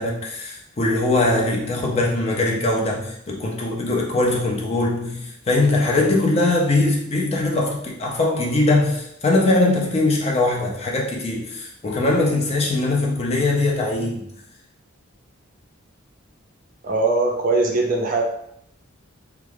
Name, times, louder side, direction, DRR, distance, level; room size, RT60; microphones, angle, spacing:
voice 1, 0.0-14.2, left 2 dB, 30° left, -2 dB, 0.5 m, -21 dB
voice 2, 16.8-18.2, right 3 dB, 40° right, 1 dB, 0.4 m, -20 dB
2.3 x 2.3 x 3.2 m, 0.72 s
head